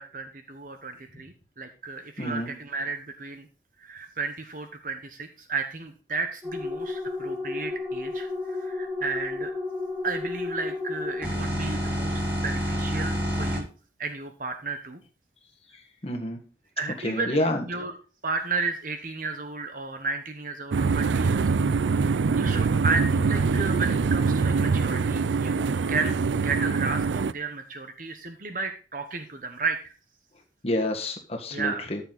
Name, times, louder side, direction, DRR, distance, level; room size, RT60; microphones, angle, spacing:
voice 1, 0.0-3.5 3.8-9.5 10.0-13.7 14.0-15.0 16.8-18.0 18.2-21.7 22.0-26.2 26.4-29.9 31.5-31.9, right 4 dB, 50° right, 7 dB, 1.0 m, -33 dB
voice 2, 2.2-2.5 16.0-16.4 17.0-17.6 30.6-32.0, left 1 dB, 35° left, 3 dB, 1.6 m, -28 dB
sound 1, 6.4-13.6, left 1 dB, 10° right, 5.6 m, -30 dB
sound 2, 20.7-27.3, right 4 dB, 85° right, 0.4 m, -24 dB
13.5 x 7.1 x 4.0 m, 0.35 s
head